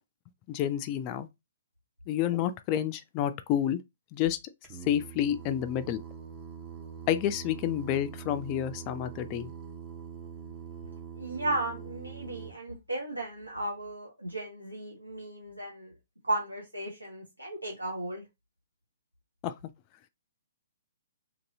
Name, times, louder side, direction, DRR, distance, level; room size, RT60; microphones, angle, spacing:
voice 1, 0.5-1.3 2.1-3.8 4.1-4.4 4.9-6.0 7.1-9.5 19.4-19.5, left 11 dB, 30° left, 0.3 m, -29 dB
Singing, 4.6-12.5, right 7 dB, 30° right, 0.6 m, -43 dB
voice 2, 11.1-15.9 16.2-18.2, right 2 dB, 90° right, 0.7 m, -35 dB
2.8 x 2.6 x 2.7 m
figure-of-eight pair, 125°, 0 cm